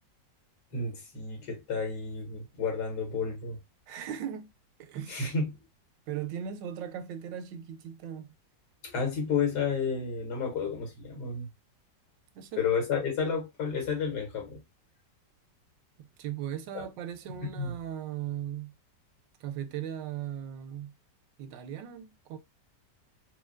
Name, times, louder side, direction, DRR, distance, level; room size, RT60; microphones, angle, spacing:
voice 1, 0.7-3.6 5.1-5.5 8.8-11.5 12.6-14.6 16.7-16.9 17.4-17.7, left 5 dB, 65° left, 1.8 m, -31 dB
voice 2, 3.9-4.5 4.8-5.2 6.1-8.3 12.4-12.6 16.0-18.7 19.4-20.9 21.4-22.4, right 10 dB, 85° right, 1.3 m, -38 dB
4.4 x 2.1 x 2.4 m
omnidirectional pair, 1.9 m